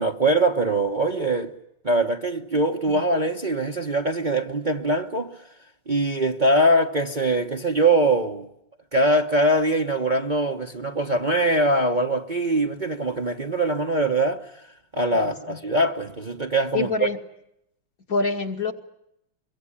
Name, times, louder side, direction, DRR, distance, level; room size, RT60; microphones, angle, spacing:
voice 1, 0.0-1.5 1.8-5.4 5.9-8.5 8.9-14.5 14.9-17.1, right 1 dB, 30° right, 1.2 m, -22 dB
voice 2, 15.1-15.6 16.7-17.2 18.1-18.7, left 4 dB, 50° left, 2.7 m, -26 dB
24.0 x 23.5 x 9.9 m
omnidirectional pair, 1.9 m